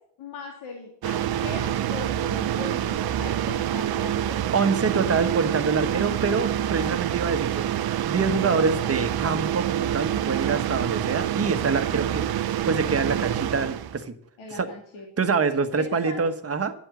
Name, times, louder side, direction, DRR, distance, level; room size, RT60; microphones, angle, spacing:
voice 1, 0.2-4.5 14.4-15.2 15.7-16.2, left 3 dB, 75° left, 0 dB, 2.6 m, -39 dB
sound 1, 1.0-14.0, right 11 dB, 50° right, 0.7 m, -27 dB
voice 2, 4.5-12.3 12.6-14.1 14.5-14.7 15.2-16.7, right 5 dB, 30° right, 7 dB, 1.3 m, -25 dB
11.5 x 7.9 x 7.7 m, 0.65 s
cardioid pair, 105°, 48 cm